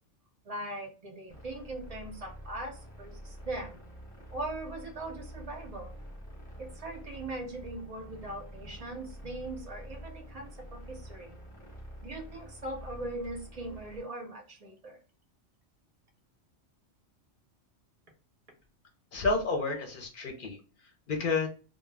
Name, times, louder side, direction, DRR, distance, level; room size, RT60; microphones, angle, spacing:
voice 1, 0.4-3.8 4.3-6.0 6.6-11.4 12.0-15.0, right 2 dB, 45° right, 2 dB, 0.5 m, -40 dB
sound 1, 1.3-14.0, equal, 10° left, 0.8 m, -47 dB
voice 2, 19.1-20.6 21.1-21.5, left 3 dB, 55° left, 3 dB, 0.7 m, -30 dB
2.2 x 2.1 x 3.2 m, 0.36 s
omnidirectional pair, 1.2 m